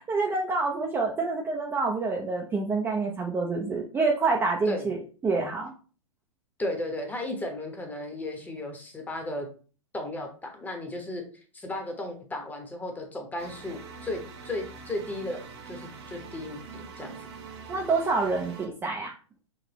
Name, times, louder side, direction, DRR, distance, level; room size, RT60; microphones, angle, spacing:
voice 1, 0.0-5.7 17.7-19.1, right 3 dB, 10° right, -1 dB, 0.6 m, -27 dB
voice 2, 6.6-9.5 9.9-10.3 10.5-11.2 11.5-15.4 15.7-17.1, left 1 dB, 10° left, 3 dB, 1.0 m, -34 dB
sound 1, 13.4-18.7, right 5 dB, 55° right, 0.9 m, -44 dB
6.0 x 2.5 x 3.0 m, 0.39 s
figure-of-eight pair, 110°, 17 cm